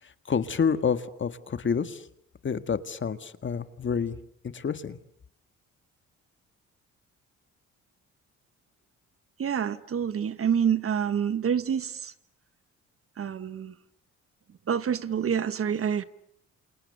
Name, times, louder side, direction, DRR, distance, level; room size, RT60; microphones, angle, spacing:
voice 1, 0.0-2.1 2.4-4.2 4.4-5.0, left 6 dB, 40° left, 11 dB, 1.7 m, -28 dB
voice 2, 9.4-12.1 13.2-13.7 14.7-16.0, right 8 dB, 45° right, 14 dB, 1.3 m, -27 dB
29.0 x 28.5 x 6.9 m, 0.70 s
cardioid pair, 90°, 30 cm